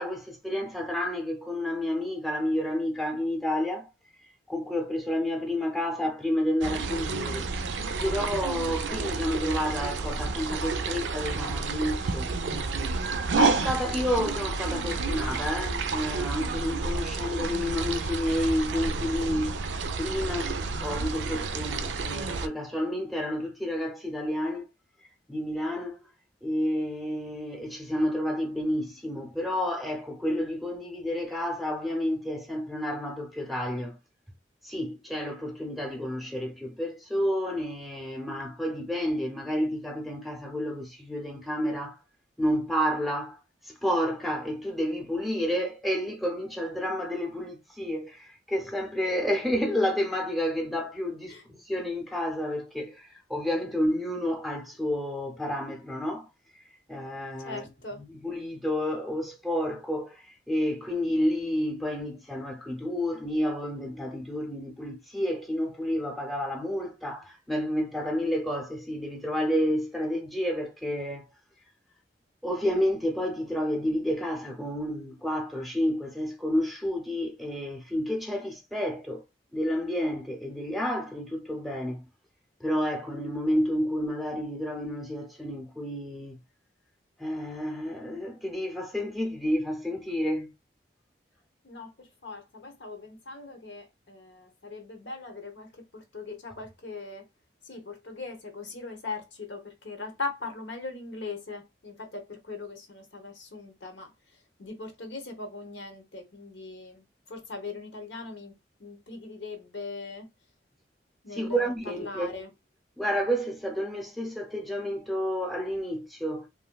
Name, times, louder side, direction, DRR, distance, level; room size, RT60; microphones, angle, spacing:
voice 1, 0.0-3.9 4.5-7.5 8.0-13.0 13.4-19.6 20.0-24.7 25.3-26.0 26.4-34.0 34.6-42.0 42.4-56.3 56.9-57.7 57.9-71.3 72.4-79.2 79.5-82.1 82.6-86.4 87.2-90.5 111.3-112.4 113.0-116.5, equal, ahead, 0.6 m, -30 dB
sound 1, 6.6-22.5, right 3 dB, 90° right, 0.4 m, -30 dB
voice 2, 57.4-58.0 91.6-97.3 97.6-108.5 108.8-110.3 111.2-112.5, left 3 dB, 90° left, 0.9 m, -40 dB
3.1 x 2.5 x 2.3 m
head